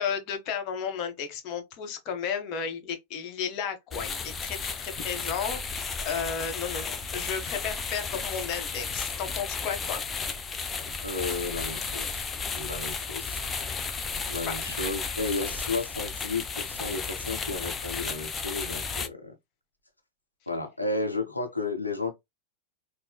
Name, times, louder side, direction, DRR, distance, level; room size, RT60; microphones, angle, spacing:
voice 1, 0.0-10.0 14.5-14.8, left 7 dB, 40° left, 0.9 m, -33 dB
sound 1, 3.9-19.1, left 5 dB, 20° left, 0.5 m, -34 dB
voice 2, 11.0-13.4 14.3-19.3 20.5-22.2, left 3 dB, 85° left, 0.8 m, -33 dB
4.4 x 2.0 x 2.2 m
figure-of-eight pair, 90°, 0 cm